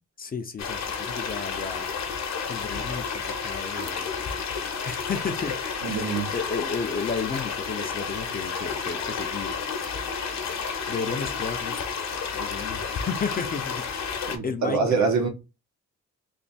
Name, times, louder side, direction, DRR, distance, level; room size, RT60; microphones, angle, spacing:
voice 1, 0.2-1.9 2.4-4.1 4.8-5.6 5.8-6.0 6.3-9.6 10.9-11.8 12.3-15.0, left 5 dB, 30° left, 0.5 m, -33 dB
sound 1, 0.6-14.4, left 6 dB, 60° left, 0.8 m, -31 dB
voice 2, 5.8-6.3 14.3-15.3, right 5 dB, 65° right, 1.2 m, -24 dB
3.4 x 2.3 x 4.0 m
cardioid pair, 115°, 30 cm